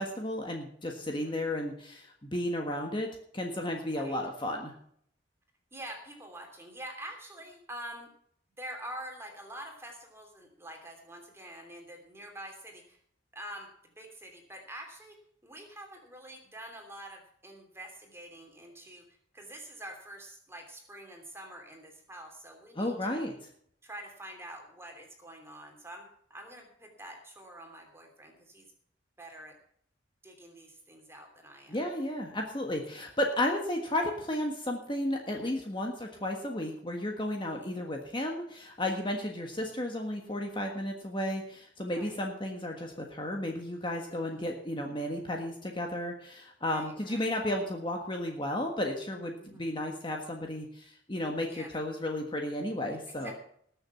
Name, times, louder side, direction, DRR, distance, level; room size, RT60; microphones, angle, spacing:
voice 1, 0.0-4.7 22.7-23.3 31.7-53.3, left 1 dB, 25° left, 2 dB, 1.5 m, -33 dB
voice 2, 5.7-8.1 8.6-13.0 13.3-15.2 15.4-23.3 23.8-28.7 29.2-29.6 30.2-31.8 33.0-33.1 37.5-37.8 39.1-39.3 41.9-42.2 44.1-44.5 46.6-47.3 49.4-49.7 51.5-51.7 53.1-53.3, right 1 dB, 15° right, 2 dB, 3.0 m, -46 dB
19.5 x 7.0 x 5.8 m, 0.66 s
head